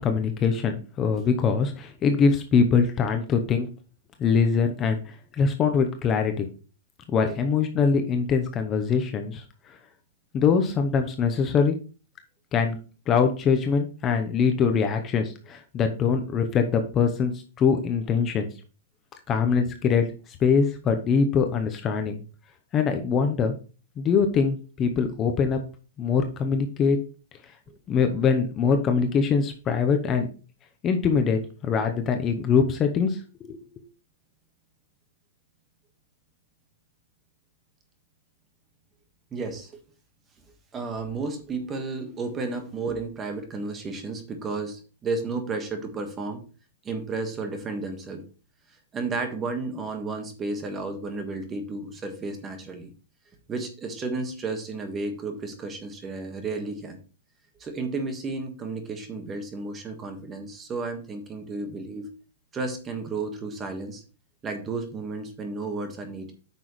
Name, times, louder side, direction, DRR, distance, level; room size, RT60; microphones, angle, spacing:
voice 1, 0.0-3.7 4.2-6.5 7.1-9.8 10.3-11.8 12.5-12.8 13.1-18.5 19.3-22.2 22.7-23.5 24.0-25.6 26.0-27.0 27.9-30.3 30.8-33.6, left 6 dB, 20° left, 6 dB, 0.8 m, -23 dB
voice 2, 39.3-39.7 40.7-46.4 46.8-48.2 48.9-52.9 53.5-57.0 57.6-62.1 62.5-64.0 64.4-66.3, right 3 dB, 15° right, 6 dB, 1.5 m, -32 dB
9.0 x 6.1 x 3.1 m, 0.36 s
supercardioid pair, 160°, 0 cm